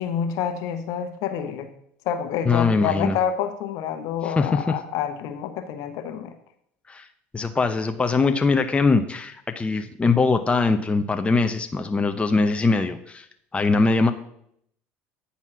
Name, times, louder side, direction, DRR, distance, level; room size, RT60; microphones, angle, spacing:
voice 1, 0.0-1.7 2.0-6.3, left 8 dB, 65° left, 7 dB, 1.0 m, -28 dB
voice 2, 2.4-3.2 4.2-4.8 6.9-7.1 7.3-13.3 13.5-14.1, left 4 dB, 20° left, 7 dB, 0.7 m, -22 dB
9.0 x 4.2 x 6.0 m, 0.70 s
hypercardioid pair, 80°, 6 cm